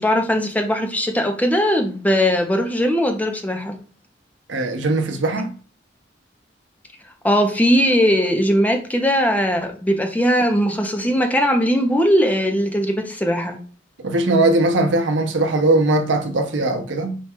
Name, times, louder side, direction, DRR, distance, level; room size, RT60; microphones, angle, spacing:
voice 1, 0.0-3.7 7.2-13.6, equal, 10° left, 0.6 m, -19 dB
voice 2, 4.5-5.5 14.0-17.2, right 2 dB, 85° right, 0.7 m, -19 dB
4.5 x 2.3 x 4.3 m
head